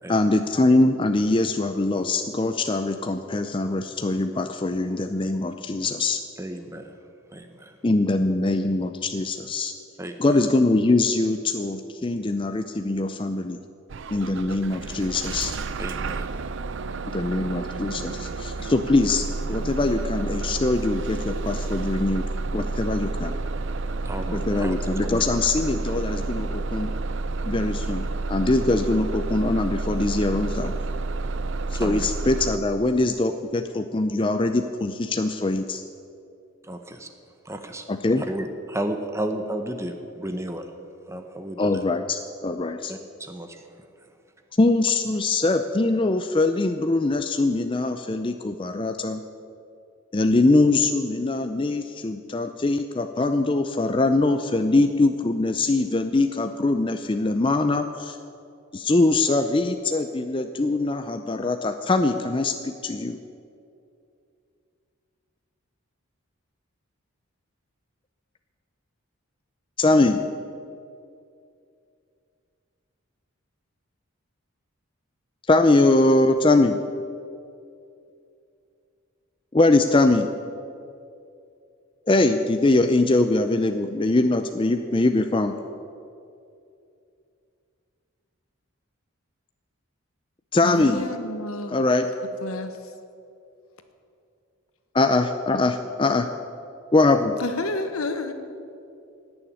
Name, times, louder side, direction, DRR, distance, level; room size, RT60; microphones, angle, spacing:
voice 1, 0.1-6.2 7.8-9.7 10.2-13.6 14.1-15.5 17.1-22.3 22.5-23.4 24.3-26.9 27.5-30.7 31.7-35.8 37.9-38.2 41.6-42.9 44.6-49.2 50.1-58.2 58.7-63.2 69.8-70.2 75.5-76.8 79.5-80.3 82.1-85.6 90.5-91.0 91.7-92.1 94.9-95.7 96.0-96.3 96.9-97.4, left 2 dB, 25° left, 7 dB, 0.4 m, -22 dB
voice 2, 6.4-7.0 7.3-7.8 10.0-10.4 15.8-16.3 18.6-18.7 24.0-24.7 25.0-25.2 31.7-32.1 36.6-37.1 37.4-37.8 38.2-40.7 41.1-41.8 42.9-43.7, right 1 dB, 15° right, 6 dB, 0.8 m, -33 dB
Bus / Engine starting, 13.9-32.6, right 3 dB, 60° right, 0.5 m, -30 dB
voice 3, 90.6-91.8 92.4-92.9 97.4-98.3, left 2 dB, 85° left, 8 dB, 1.3 m, -30 dB
17.0 x 7.0 x 9.8 m, 2.6 s
head